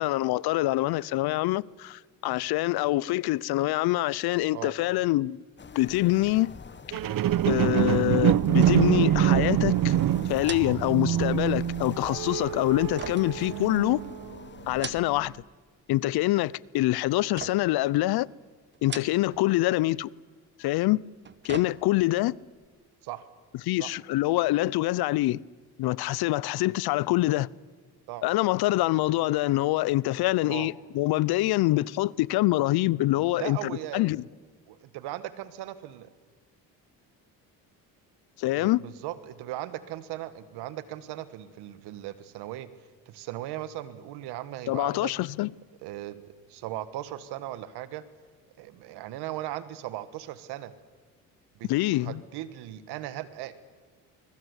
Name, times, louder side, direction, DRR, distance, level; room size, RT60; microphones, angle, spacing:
voice 1, 0.0-5.4 5.7-6.5 7.5-10.0 10.3-14.0 14.7-15.3 15.9-18.3 18.8-20.1 20.6-21.0 21.4-22.3 23.7-25.4 25.8-27.5 28.2-34.2 38.4-38.8 44.7-45.5 51.7-52.2, left 17 dB, 75° left, 0.7 m, -25 dB
sound 1, 5.6-14.9, left 6 dB, 30° left, 1.2 m, -46 dB
sound 2, 6.9-14.4 14.9-15.0, right 11 dB, 60° right, 1.0 m, -25 dB
sound 3, 8.6-9.1 9.4-9.5 10.4-11.5 13.0-14.1 14.6-15.4 15.7-16.3 17.4-17.9 18.7-19.5 19.8-19.9 21.0-22.2 22.6-22.7, right 6 dB, 30° right, 1.1 m, -41 dB
voice 2, 33.1-34.1 34.7-36.1 38.5-42.7 43.0-45.1 45.8-48.0 48.6-50.7 51.6-53.5, right 14 dB, 85° right, 1.6 m, -38 dB
24.5 x 22.0 x 8.2 m
supercardioid pair, 80°, 38 cm